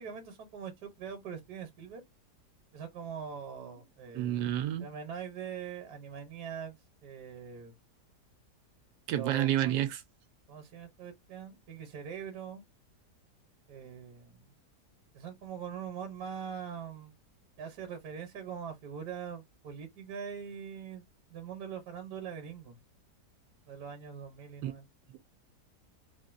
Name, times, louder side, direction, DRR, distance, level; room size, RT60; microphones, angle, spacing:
voice 1, 0.0-2.0 2.7-4.5 4.8-7.7 9.1-9.8 10.5-12.6 13.7-14.5 15.1-17.1 17.6-22.8 23.7-24.9, right 7 dB, 70° right, 1.4 m, -42 dB
voice 2, 4.1-4.9 9.1-10.0 24.6-24.7, right 12 dB, 85° right, 1.3 m, -29 dB
3.5 x 2.5 x 2.5 m
omnidirectional pair, 1.8 m